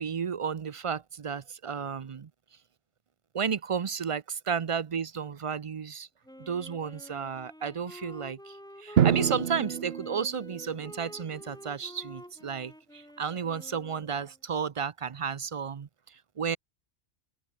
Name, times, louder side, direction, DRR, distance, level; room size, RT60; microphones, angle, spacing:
voice 1, 0.0-2.3 3.3-6.1 6.4-16.6, right 6 dB, 40° right, 0.5 m, -33 dB
Wind instrument woodwind instrument, 6.2-14.4, equal, 5° left, 2.5 m, -49 dB
Drum, 9.0-10.9, right 9 dB, 70° right, 1.0 m, -27 dB
open air
omnidirectional pair, 1.1 m